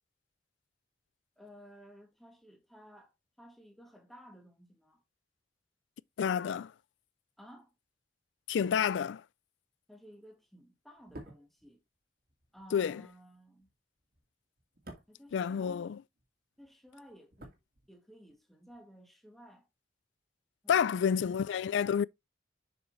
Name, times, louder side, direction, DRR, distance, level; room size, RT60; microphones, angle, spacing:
voice 1, 1.4-5.0 7.4-7.7 9.9-11.8 12.5-13.7 15.1-15.9 16.6-17.6 17.9-19.7 20.6-21.2, equal, ahead, 1.6 m, -55 dB
voice 2, 6.2-6.7 8.5-9.2 12.7-13.0 15.3-16.0 20.7-22.0, left 7 dB, 70° left, 0.3 m, -29 dB
sound 1, 11.0-16.3 16.5-18.4 18.6-18.8, right 1 dB, 55° right, 2.1 m, -54 dB
7.0 x 6.1 x 3.1 m
head